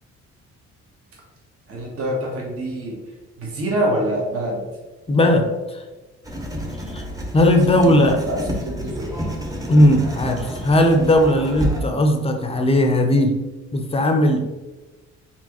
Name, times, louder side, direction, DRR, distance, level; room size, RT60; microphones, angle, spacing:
voice 1, 1.7-2.9 3.4-4.6 7.8-9.3, right 1 dB, 50° right, -2 dB, 1.2 m, -25 dB
voice 2, 5.1-5.8 6.9-7.0 7.3-8.2 9.7-13.4 13.7-14.5, left 1 dB, 20° left, 4 dB, 0.7 m, -17 dB
Writing, 6.2-11.8, equal, 10° right, 0.9 m, -30 dB
4.5 x 3.6 x 3.0 m, 1.2 s
cardioid pair, 90°, 30 cm